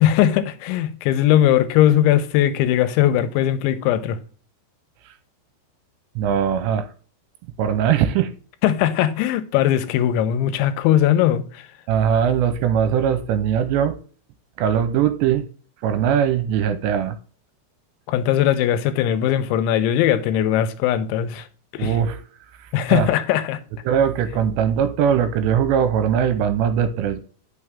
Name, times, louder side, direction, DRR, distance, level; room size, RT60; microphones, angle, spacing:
voice 1, 0.0-4.2 8.6-11.7 18.1-21.5 21.7-22.0 22.7-23.6, left 11 dB, 90° left, 3.1 m, -19 dB
voice 2, 6.2-6.9 7.6-8.3 11.9-14.0 14.6-15.4 15.8-17.2 21.8-22.2 22.9-23.1 23.9-27.2, right 8 dB, 85° right, 2.8 m, -20 dB
9.7 x 6.0 x 3.5 m
omnidirectional pair, 5.2 m